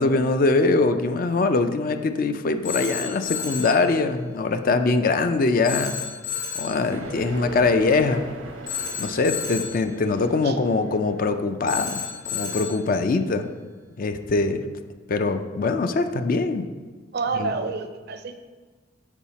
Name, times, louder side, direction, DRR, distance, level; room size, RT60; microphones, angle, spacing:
voice 1, 0.0-6.0 6.6-8.2 9.0-13.5 14.0-14.6 15.1-16.7 17.4-17.5, left 3 dB, 45° left, 8 dB, 0.4 m, -22 dB
Telephone, 2.6-3.8 5.6-6.8 8.7-9.8 11.7-12.8, left 7 dB, 75° left, 2.0 m, -31 dB
sound 1, 6.9-11.4, right 2 dB, 90° right, 0.8 m, -39 dB
voice 2, 17.1-18.4, right 4 dB, 50° right, 8 dB, 0.5 m, -28 dB
7.3 x 4.7 x 4.1 m, 1.4 s
head